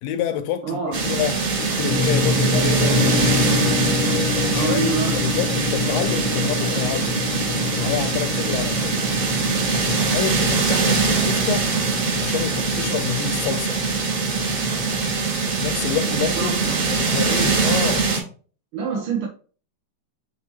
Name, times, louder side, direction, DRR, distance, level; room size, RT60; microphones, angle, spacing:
voice 1, 0.0-3.6 4.4-7.2 7.8-9.0 9.7-11.7 12.2-13.8 15.5-16.6 16.9-18.1, left 10 dB, 90° left, 2.4 m, -28 dB
voice 2, 0.6-1.0 4.5-5.2 16.1-16.8 18.7-19.3, right 5 dB, 60° right, 1.4 m, -27 dB
sound 1, 0.9-18.2, right 4 dB, 85° right, 4.7 m, -22 dB
sound 2, 1.9-15.2, left 5 dB, 55° left, 1.4 m, -27 dB
7.3 x 4.3 x 3.0 m
omnidirectional pair, 3.9 m